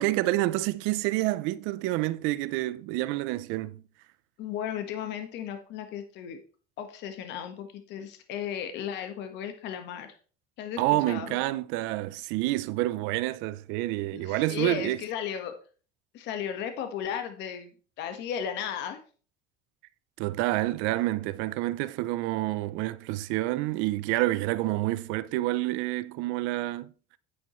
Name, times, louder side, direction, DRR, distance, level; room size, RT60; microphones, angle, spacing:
voice 1, 0.0-3.8 10.8-15.0 20.2-26.9, right 17 dB, 75° right, 0.7 m, -28 dB
voice 2, 4.4-6.4 6.8-10.2 10.6-11.4 14.1-15.5 16.1-17.7 18.0-19.0, left 8 dB, 60° left, 1.6 m, -35 dB
9.8 x 9.2 x 3.2 m
cardioid pair, 120°, 20 cm